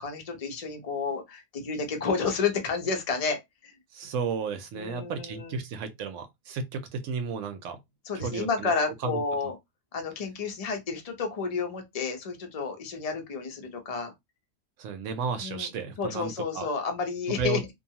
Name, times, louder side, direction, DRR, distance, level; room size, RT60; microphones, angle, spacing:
voice 1, 0.0-3.7 4.7-5.6 8.0-9.6 9.9-14.1 15.4-15.7 16.0-17.7, left 5 dB, 40° left, 0.5 m, -31 dB
voice 2, 3.9-7.8 8.2-8.7 9.0-9.2 14.8-16.7 17.3-17.6, right 5 dB, 70° right, 0.8 m, -33 dB
2.5 x 2.3 x 2.8 m
omnidirectional pair, 1.5 m